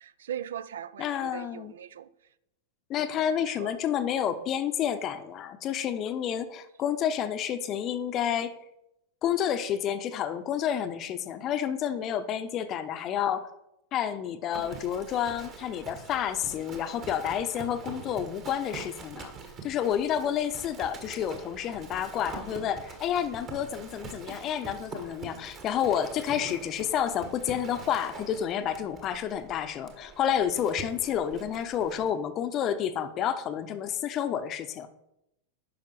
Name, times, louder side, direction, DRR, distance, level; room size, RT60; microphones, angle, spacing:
voice 1, 0.0-2.1 3.2-3.7, right 10 dB, 60° right, 0.4 m, -39 dB
voice 2, 1.0-1.7 2.9-8.5 9.2-13.5 13.9-19.3 19.6-34.9, left 9 dB, 35° left, 0.7 m, -30 dB
Livestock farm animals working animals, 14.5-32.1, right 4 dB, 30° right, 1.6 m, -44 dB
10.5 x 5.8 x 4.4 m
figure-of-eight pair, 90°, 0 cm